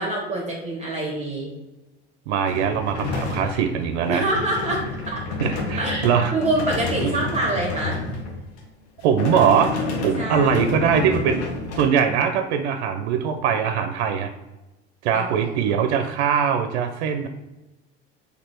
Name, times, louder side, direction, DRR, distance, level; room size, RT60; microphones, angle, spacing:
voice 1, 0.0-1.6 4.1-5.2 5.8-8.0 10.1-10.7 15.1-15.9, right 2 dB, 20° right, -2 dB, 1.1 m, -26 dB
voice 2, 2.3-4.3 5.4-6.3 7.0-7.1 9.0-9.7 10.0-11.4 11.8-14.3 15.0-17.3, right 7 dB, 70° right, 7 dB, 0.5 m, -21 dB
sound 1, 2.5-8.6 9.0-11.8, left 3 dB, 70° left, 1.0 m, -29 dB
4.2 x 2.8 x 4.2 m, 1.0 s
hypercardioid pair, 80°, 33 cm